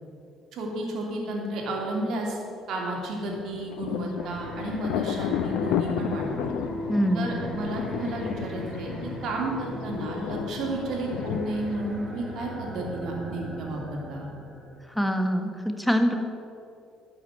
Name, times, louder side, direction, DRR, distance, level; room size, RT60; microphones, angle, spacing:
voice 1, 0.5-2.4 2.7-6.5 7.1-8.9 9.2-14.3, right 2 dB, 60° right, -1 dB, 2.7 m, -32 dB
Thunder, 3.3-12.8, left 11 dB, 70° left, 0.4 m, -33 dB
sound 1, 4.1-14.8, right 1 dB, 20° right, 2.8 m, -38 dB
voice 2, 6.9-7.3 14.9-16.2, equal, ahead, 5 dB, 1.4 m, -24 dB
11.5 x 6.2 x 7.7 m, 2.5 s
hypercardioid pair, 55°, 0 cm